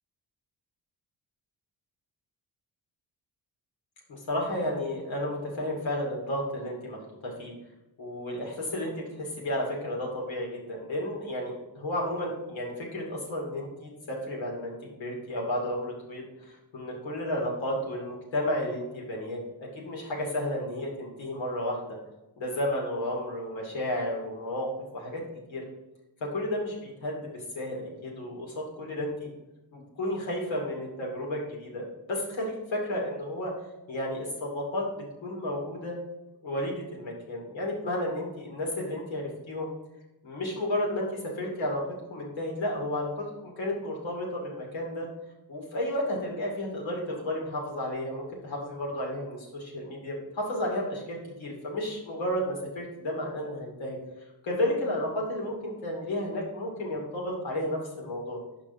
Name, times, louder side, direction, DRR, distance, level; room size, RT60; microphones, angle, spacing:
voice 1, 4.1-7.5 8.0-22.0 22.4-25.2 25.5-25.6 26.3-29.3 29.7-33.5 33.9-36.0 36.4-39.7 40.2-41.8 42.1-45.1 45.5-54.0 54.4-58.4, left 1 dB, 90° left, -2 dB, 2.4 m, -32 dB
5.9 x 5.2 x 5.3 m, 0.97 s
cardioid pair, 75°, 45 cm